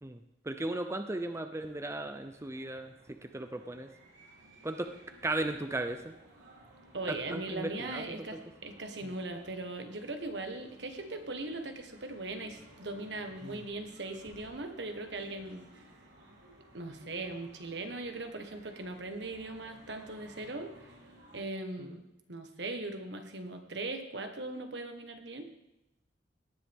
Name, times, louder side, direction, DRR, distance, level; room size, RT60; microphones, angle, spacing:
voice 1, 0.0-3.9 4.6-4.9 5.2-6.1 7.1-8.4 9.0-9.1 13.4-13.6 21.8-22.0, right 2 dB, 15° right, 7 dB, 0.6 m, -37 dB
sound 1, 1.6-21.4, right 1 dB, 90° right, 3.6 m, -58 dB
voice 2, 6.9-15.6 16.7-20.7 21.3-22.0 22.3-25.5, right 2 dB, 70° right, 5 dB, 1.5 m, -39 dB
18.0 x 9.9 x 3.7 m, 0.91 s
head